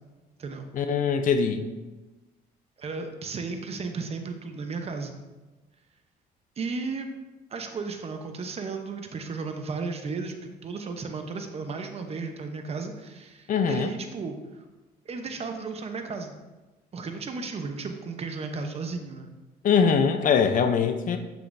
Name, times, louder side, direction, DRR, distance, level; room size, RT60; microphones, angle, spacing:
voice 1, 0.7-1.7 13.5-13.9 19.6-21.2, left 6 dB, 50° left, 8 dB, 0.6 m, -22 dB
voice 2, 2.8-5.2 6.6-7.1 7.5-14.6 15.0-16.3 16.9-19.3, right 4 dB, 35° right, 5 dB, 0.8 m, -34 dB
8.0 x 6.7 x 2.6 m, 1.1 s
cardioid pair, 110°, 17 cm